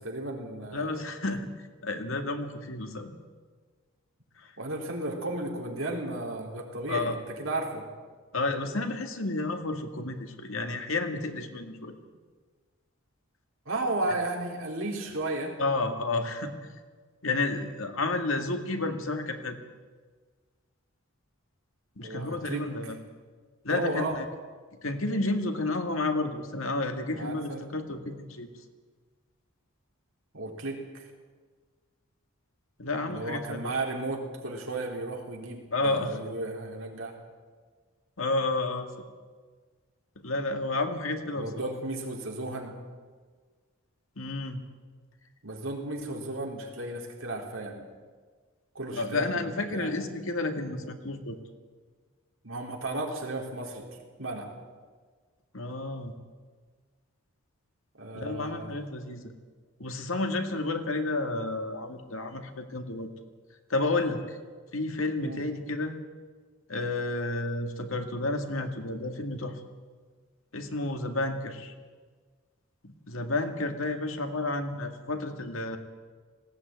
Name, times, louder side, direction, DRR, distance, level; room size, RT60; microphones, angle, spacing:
voice 1, 0.0-1.0 4.6-7.9 13.7-15.5 22.0-22.9 23.7-24.2 27.1-27.7 30.3-31.1 33.1-37.2 41.3-42.7 45.4-47.9 48.7-49.9 52.4-53.9 54.2-54.5 58.0-58.8 65.2-65.4, right 2 dB, 65° right, 0 dB, 4.0 m, -34 dB
voice 2, 0.7-1.5 1.8-3.1 4.4-4.5 6.9-7.2 8.3-12.0 15.6-16.5 17.2-19.6 22.0-23.0 23.6-24.3 24.8-28.5 32.8-33.6 35.7-36.2 38.2-39.1 40.2-41.7 44.2-44.6 48.9-51.4 55.5-56.1 58.1-59.2 59.8-63.1 63.7-64.4 64.7-66.0 66.7-69.6 70.5-71.7 72.8-75.8, left 2 dB, 70° left, 6 dB, 2.0 m, -31 dB
19.5 x 16.5 x 9.4 m, 1.5 s
head